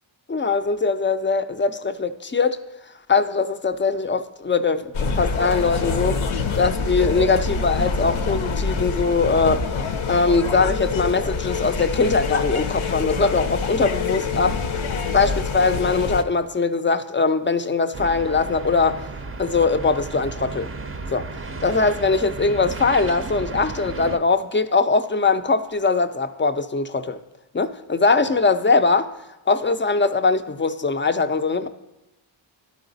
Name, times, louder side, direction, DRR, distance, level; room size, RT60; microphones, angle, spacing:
voice 1, 0.3-2.6 3.1-6.2 6.5-9.7 10.1-19.1 19.4-20.7 21.1-21.3 21.6-27.2 27.5-29.1 29.5-31.7, left 4 dB, 25° left, 0.4 m, -21 dB
sound 1, 4.9-16.2, left 4 dB, 75° left, 0.7 m, -25 dB
sound 2, 17.9-24.2, right 3 dB, 30° right, 0.5 m, -34 dB
12.0 x 4.0 x 3.9 m
cardioid pair, 55°, 49 cm